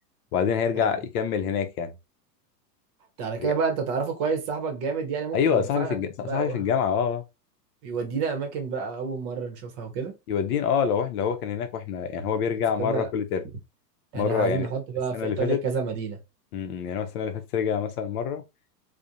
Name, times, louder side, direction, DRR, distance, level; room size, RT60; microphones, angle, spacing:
voice 1, 0.3-1.9 3.4-3.5 5.3-7.2 10.3-13.4 14.1-14.7 15.1-15.6 16.5-18.4, left 7 dB, 65° left, 0.6 m, -26 dB
voice 2, 3.2-5.9 6.2-6.7 7.8-10.1 12.8-13.1 14.1-16.2, right 5 dB, 40° right, 0.7 m, -29 dB
2.4 x 2.1 x 2.7 m
hypercardioid pair, 125°, 49 cm